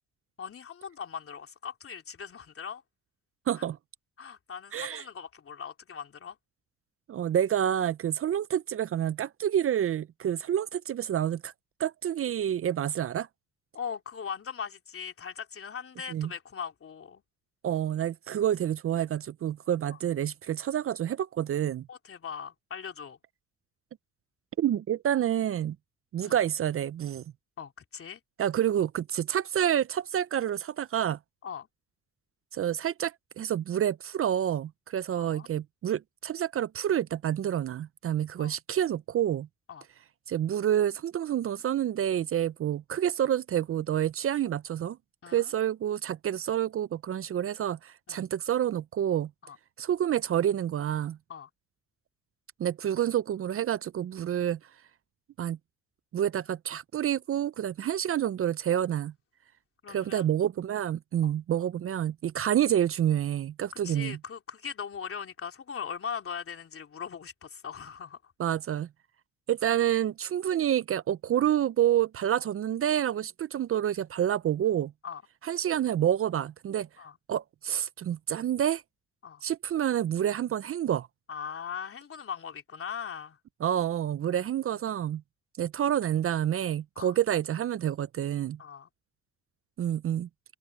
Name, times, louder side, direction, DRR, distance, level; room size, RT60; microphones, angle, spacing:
voice 1, 0.4-2.8 3.6-3.7 4.2-6.4 13.7-17.2 19.9-20.0 21.9-23.2 26.2-26.4 27.6-28.2 31.4-31.7 35.2-35.5 38.4-38.5 39.7-39.9 45.2-45.5 48.1-48.2 49.4-49.6 51.3-51.5 59.8-60.3 61.2-61.3 63.8-68.3 75.0-75.2 77.0-77.2 79.2-79.4 81.3-83.4 84.3-84.5 87.0-87.2 88.6-88.9, left 7 dB, 45° left, 3.6 m, -40 dB
voice 2, 3.5-3.8 4.7-5.0 7.1-11.5 11.8-13.3 16.1-16.3 17.6-21.9 24.6-25.8 26.1-27.2 28.4-31.2 32.5-39.5 40.3-45.0 45.3-49.3 49.8-51.2 52.6-54.6 55.4-55.6 56.1-59.1 59.9-64.2 68.4-68.9 69.5-74.9 75.4-76.9 77.3-78.8 79.4-81.1 83.6-85.2 85.6-88.6 89.8-90.3, right 10 dB, 45° right, 0.5 m, -28 dB
open air
cardioid pair, 90°, 30 cm